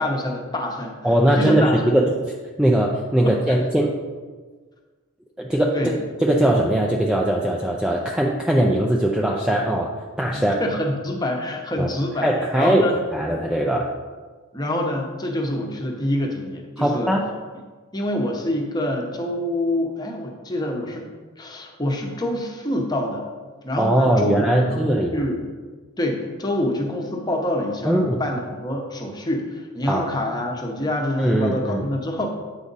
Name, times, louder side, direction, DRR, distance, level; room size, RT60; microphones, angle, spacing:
voice 1, 0.0-1.0 1.3-1.9 3.2-3.6 5.7-5.9 10.3-12.3 12.6-12.9 14.5-17.2 17.9-21.1 21.4-23.3 23.6-25.4 26.0-32.3, left 1 dB, 20° left, 1 dB, 0.8 m, -26 dB
voice 2, 1.0-4.0 5.4-6.0 6.2-10.6 11.8-11.9 12.2-12.8 13.1-13.9 16.8-17.2 23.8-25.2 27.8-28.2 29.8-30.1 31.2-31.9, right 1 dB, 5° right, -2 dB, 0.4 m, -20 dB
8.4 x 4.9 x 4.0 m, 1.4 s
head